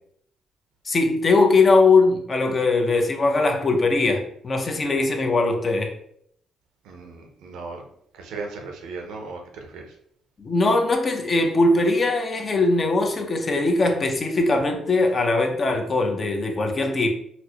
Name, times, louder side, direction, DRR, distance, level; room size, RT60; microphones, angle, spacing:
voice 1, 0.8-5.9 10.4-17.1, left 3 dB, 40° left, 3 dB, 0.7 m, -20 dB
voice 2, 6.9-7.8 8.1-9.9, right 3 dB, 90° right, 3 dB, 0.6 m, -36 dB
4.2 x 2.1 x 2.9 m, 0.68 s
cardioid pair, 90°, 0 cm